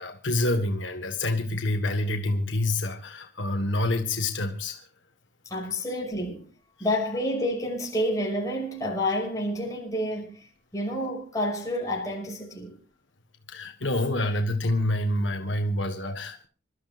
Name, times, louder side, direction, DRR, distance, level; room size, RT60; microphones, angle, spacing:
voice 1, 0.0-4.8 13.5-16.5, left 1 dB, 80° left, 1.5 m, -27 dB
voice 2, 5.4-12.8, left 1 dB, 20° left, 5.9 m, -29 dB
27.0 x 13.0 x 2.6 m
head